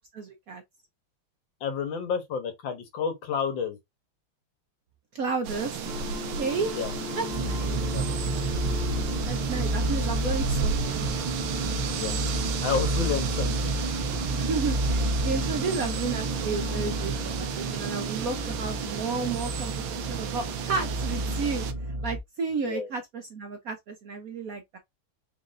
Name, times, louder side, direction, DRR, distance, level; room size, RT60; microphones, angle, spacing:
voice 1, 0.1-0.6 5.1-5.8 6.4-6.7 7.1-7.8 9.3-11.1 14.3-21.6 22.0-24.8, right 4 dB, 60° right, 0.9 m, -32 dB
voice 2, 1.6-3.8 6.7-6.9 7.9-8.1 11.9-12.2 12.6-13.7 22.6-22.9, left 6 dB, 70° left, 1.7 m, -30 dB
sound 1, 5.4-21.7, right 7 dB, 75° right, 1.4 m, -34 dB
sound 2, 5.8-19.5, left 5 dB, 50° left, 1.1 m, -40 dB
sound 3, 7.3-22.2, right 2 dB, 45° right, 0.4 m, -30 dB
4.1 x 3.9 x 2.5 m
omnidirectional pair, 2.2 m